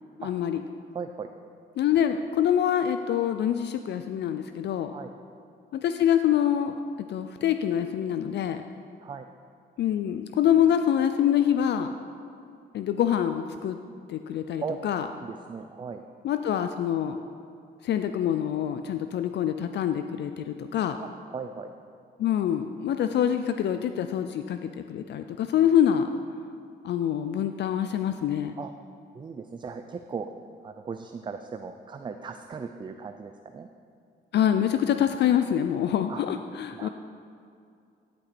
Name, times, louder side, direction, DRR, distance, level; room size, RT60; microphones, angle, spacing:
voice 1, 0.2-0.6 1.8-4.9 5.7-6.8 7.1-8.6 9.8-11.9 12.7-13.8 14.1-15.1 16.2-17.2 17.8-21.0 22.2-26.1 26.8-28.5 34.3-36.9, left 9 dB, 60° left, 8 dB, 0.4 m, -25 dB
voice 2, 0.9-1.3 4.9-5.1 9.0-9.3 14.6-14.8 15.2-16.0 21.0-21.7 28.6-28.7 29.1-30.3 30.6-33.7 36.1-36.2 36.8-36.9, right 5 dB, 25° right, 7 dB, 0.3 m, -37 dB
11.0 x 5.4 x 4.2 m, 2.4 s
cardioid pair, 90°, 20 cm